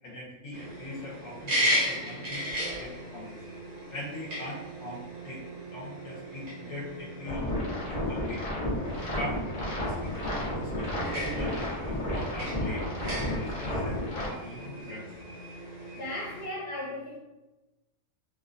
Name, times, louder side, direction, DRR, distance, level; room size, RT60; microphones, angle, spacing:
voice 1, 0.0-2.5 2.7-3.4 3.9-5.4 5.7-7.4 7.9-8.4 9.0-12.8 13.3-15.1, left 1 dB, 70° left, -5 dB, 0.9 m, -41 dB
sound 1, 0.5-16.5, equal, 70° right, 0.3 m, -36 dB
sound 2, 7.3-14.3, left 1 dB, 90° left, 0.3 m, -32 dB
voice 2, 15.9-17.2, left 1 dB, 35° left, -6 dB, 0.9 m, -37 dB
2.4 x 2.2 x 2.5 m, 1.0 s
omnidirectional pair, 1.5 m